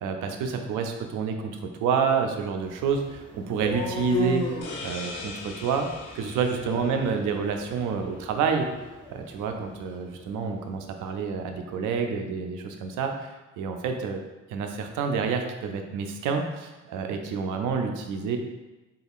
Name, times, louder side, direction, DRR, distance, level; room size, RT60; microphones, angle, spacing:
voice 1, 0.0-4.5 4.8-5.9 6.1-8.7 9.1-13.3 13.6-14.2 14.5-18.4, right 6 dB, 90° right, 5 dB, 0.5 m, -28 dB
sound 1, 2.6-10.5, left 3 dB, 20° left, 0.8 m, -36 dB
sound 2, 4.6-8.1, left 3 dB, 60° left, 0.7 m, -41 dB
3.4 x 2.4 x 3.5 m, 1.1 s
cardioid pair, 90°, 30 cm